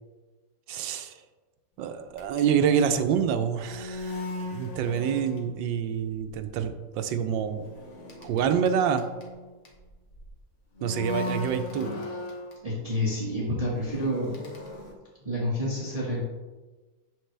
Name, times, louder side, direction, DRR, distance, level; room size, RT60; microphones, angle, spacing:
voice 1, 0.7-1.1 1.8-7.6 8.2-9.0 10.8-12.0, right 8 dB, 80° right, 8 dB, 1.3 m, -27 dB
sound 1, 2.1-5.8 6.0-6.4 7.2-10.3 10.8-12.6 13.3-14.9, left 2 dB, 45° left, 1.3 m, -38 dB
voice 2, 12.6-14.4 15.2-16.2, left 1 dB, 20° right, -7 dB, 1.4 m, -29 dB
7.7 x 6.5 x 3.3 m, 1.2 s
omnidirectional pair, 2.0 m